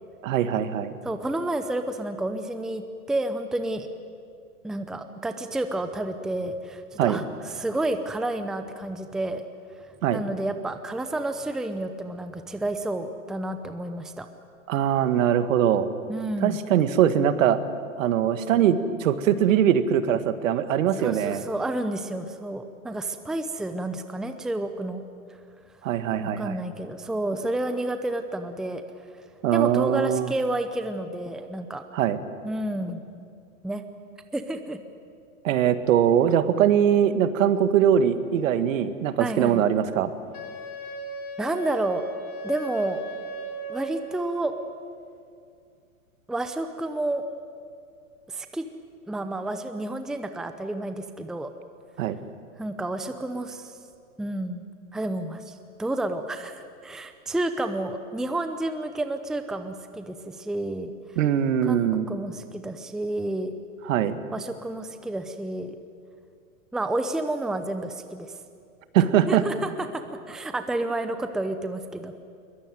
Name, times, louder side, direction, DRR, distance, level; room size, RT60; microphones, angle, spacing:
voice 1, 0.2-0.9 7.0-7.2 10.0-10.2 14.7-15.9 16.4-17.6 18.0-21.4 25.8-26.5 29.4-30.3 31.9-32.2 35.4-40.1 52.0-52.2 61.2-62.1 63.9-64.2 68.9-69.4, right 9 dB, 65° right, 12 dB, 1.8 m, -22 dB
voice 2, 1.0-2.8 3.1-3.9 4.6-9.4 10.1-14.3 16.1-16.6 21.0-25.0 26.2-28.8 29.5-31.8 32.4-33.0 33.6-33.8 34.3-34.8 39.2-39.6 41.4-42.0 42.4-43.0 43.7-44.5 46.3-47.2 48.3-48.6 49.1-51.5 52.6-53.8 54.2-54.6 54.9-60.9 61.6-63.6 64.3-65.8 66.7-68.3 69.3-70.0 70.3-72.1, right 1 dB, ahead, 8 dB, 0.7 m, -30 dB
Wind instrument woodwind instrument, 40.3-44.5, right 2 dB, 90° left, 3.3 m, -37 dB
22.0 x 20.5 x 9.3 m, 2.4 s
hypercardioid pair, 130°, 42 cm